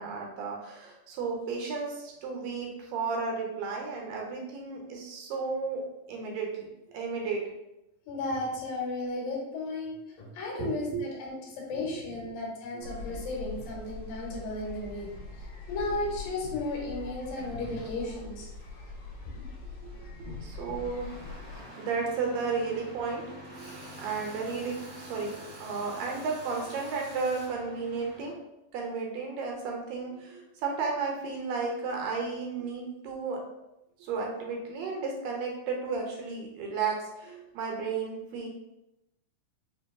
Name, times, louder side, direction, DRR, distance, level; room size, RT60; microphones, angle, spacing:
voice 1, 0.0-6.7 6.9-7.4 10.5-11.0 11.7-12.0 12.7-12.9 19.8-19.9 20.2-21.1 21.7-23.7 24.0-28.3 28.7-33.4 34.0-38.5, right 4 dB, 80° right, 0 dB, 2.3 m, -33 dB
voice 2, 8.1-15.1 15.7-18.5 19.3-19.5 20.2-20.5, left 2 dB, 80° left, -3 dB, 2.9 m, -34 dB
sound 1, 12.8-21.6, left 3 dB, 65° left, 2.3 m, -42 dB
Engine starting, 20.3-28.4, right 1 dB, 45° left, 2.1 m, -48 dB
Tools, 23.4-27.5, right 1 dB, 55° right, 1.3 m, -48 dB
6.1 x 2.9 x 2.3 m, 0.90 s
omnidirectional pair, 4.1 m